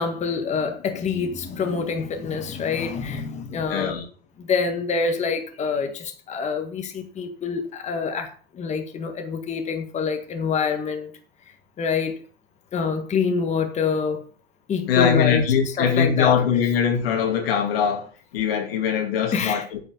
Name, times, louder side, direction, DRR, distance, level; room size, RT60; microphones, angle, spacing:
voice 1, 0.0-3.9 4.4-11.1 11.8-12.2 12.7-14.2 14.7-15.4 15.8-16.3 19.3-19.6, left 5 dB, 25° left, 1.7 m, -26 dB
voice 2, 3.7-4.1 14.9-19.8, left 7 dB, 80° left, 2.6 m, -22 dB
9.1 x 5.4 x 6.8 m
supercardioid pair, 130°, 29 cm